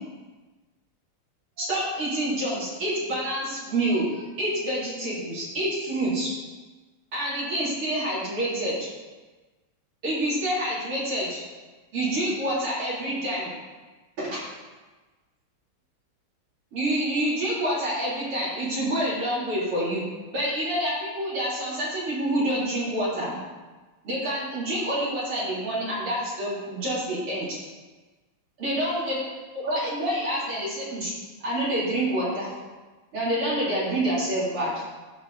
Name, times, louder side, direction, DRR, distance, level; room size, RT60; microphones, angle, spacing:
voice 1, 1.6-6.3 7.1-8.8 10.0-11.4 11.9-13.5 14.2-14.4 16.7-20.0 20.3-23.4 24.0-27.6 28.6-29.3 29.5-31.1 31.4-32.5 33.1-34.8, right 1 dB, 90° right, -8 dB, 4.4 m, -27 dB
15.5 x 5.3 x 4.1 m, 1.3 s
omnidirectional pair, 2.3 m